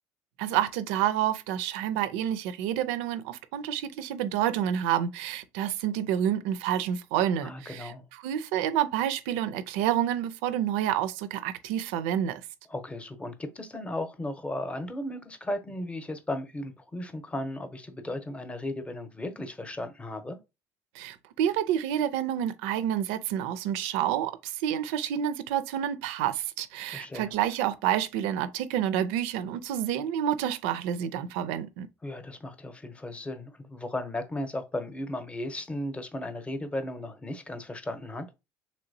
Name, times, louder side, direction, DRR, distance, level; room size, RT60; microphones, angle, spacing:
voice 1, 0.4-12.4 20.9-31.9, right 10 dB, 80° right, 0.4 m, -29 dB
voice 2, 7.4-8.0 12.7-20.4 26.8-27.3 32.0-38.3, left 1 dB, 15° left, 0.7 m, -35 dB
3.1 x 2.9 x 2.6 m
supercardioid pair, 80°, 7 cm